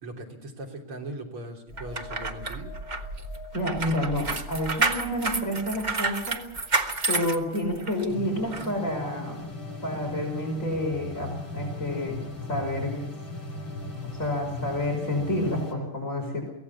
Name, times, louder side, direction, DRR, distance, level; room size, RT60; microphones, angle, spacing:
voice 1, 0.0-2.7, right 1 dB, 80° right, 1 dB, 4.3 m, -39 dB
sound 1, 1.7-9.1 9.5-9.7, right 1 dB, 50° right, 8.4 m, -43 dB
sound 2, 1.8-8.0 8.5-8.7, right 3 dB, 25° right, 1.3 m, -29 dB
voice 2, 3.5-6.4 7.1-9.4 9.8-12.2 12.5-13.0 14.2-16.5, left 1 dB, 35° left, 1 dB, 5.5 m, -29 dB
sound 3, 8.1-15.7, left 2 dB, 65° left, 7.5 m, -37 dB
24.0 x 17.5 x 7.1 m, 0.79 s
omnidirectional pair, 2.4 m